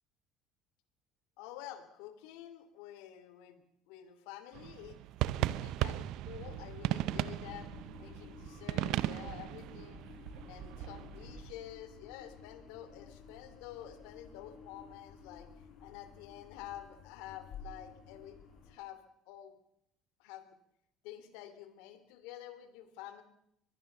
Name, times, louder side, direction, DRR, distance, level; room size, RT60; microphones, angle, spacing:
voice 1, 1.4-7.7 8.0-10.0 10.4-15.5 15.8-18.4 18.7-19.6 20.2-20.6 21.0-23.2, left 12 dB, 85° left, 12 dB, 3.0 m, -49 dB
sound 1, 4.5-11.5, right 14 dB, 70° right, 0.8 m, -37 dB
sound 2, 6.4-18.7, left 5 dB, 65° left, 7.0 m, -53 dB
23.0 x 20.5 x 6.9 m, 0.78 s
supercardioid pair, 100°, 0 cm